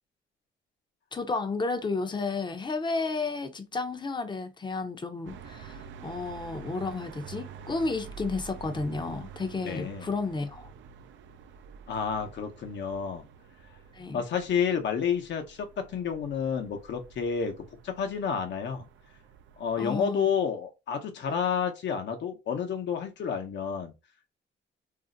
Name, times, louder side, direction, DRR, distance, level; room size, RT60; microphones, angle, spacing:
voice 1, 1.1-10.7 13.9-14.2 19.8-20.3, left 3 dB, 25° left, 0.6 m, -32 dB
sound 1, 5.3-19.8, right 7 dB, 70° right, 0.4 m, -48 dB
voice 2, 9.6-10.1 11.9-13.2 14.1-18.9 19.6-23.9, left 7 dB, 65° left, 0.8 m, -30 dB
2.6 x 2.1 x 3.8 m
cardioid pair, 90°, 20 cm